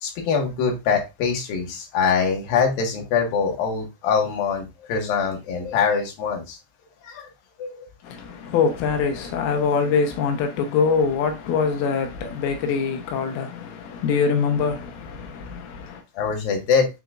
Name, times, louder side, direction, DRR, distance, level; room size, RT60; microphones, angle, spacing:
voice 1, 0.0-6.6 7.0-7.3 7.6-7.9 8.6-8.7 16.1-16.9, left 6 dB, 60° left, 2.7 m, -23 dB
voice 2, 8.0-16.0, left 5 dB, 90° left, 2.1 m, -24 dB
9.8 x 4.1 x 2.4 m
omnidirectional pair, 5.7 m